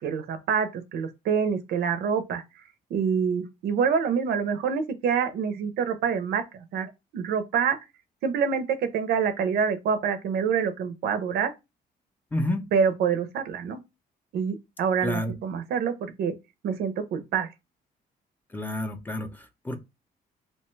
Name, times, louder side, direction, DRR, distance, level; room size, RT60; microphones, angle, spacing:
voice 1, 0.0-2.4 2.9-7.8 8.2-11.5 12.7-13.8 14.3-16.3 16.6-17.5, right 6 dB, 80° right, 0.5 m, -26 dB
voice 2, 12.3-12.6 15.0-15.3 18.5-19.8, left 1 dB, 10° left, 0.4 m, -29 dB
2.8 x 2.2 x 3.0 m
cardioid pair, 110°, 16 cm